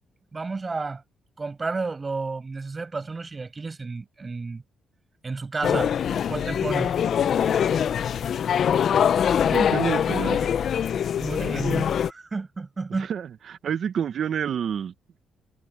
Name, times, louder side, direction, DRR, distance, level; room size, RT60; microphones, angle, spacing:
voice 1, 0.3-1.0 1.4-4.6 5.2-5.9 6.3-6.9 11.2-13.1, right 4 dB, 30° right, 6.4 m, -31 dB
sound 1, 5.6-12.1, left 8 dB, 60° left, 0.7 m, -23 dB
voice 2, 9.5-10.4 13.1-14.9, right 8 dB, 60° right, 1.1 m, -28 dB
cardioid pair, 90°, 0 cm